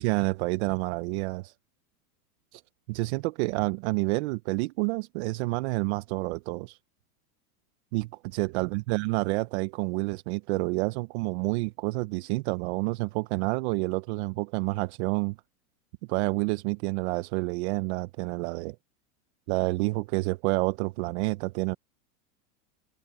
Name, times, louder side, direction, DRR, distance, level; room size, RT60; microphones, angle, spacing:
voice 1, 0.0-1.5 2.5-2.6 2.9-6.8 7.9-15.4 16.1-18.8 19.5-21.7, right 24 dB, 50° right, 0.6 m, -29 dB
supercardioid pair, 150°, 44 cm